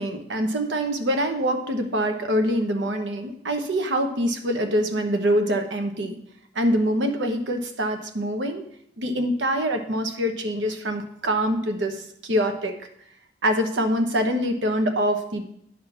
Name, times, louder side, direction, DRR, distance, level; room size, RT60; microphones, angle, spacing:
voice 1, 0.0-6.2 6.5-8.6 9.0-12.7 13.4-15.4, equal, 85° right, 5 dB, 1.0 m, -24 dB
10.5 x 3.8 x 5.8 m, 0.71 s
head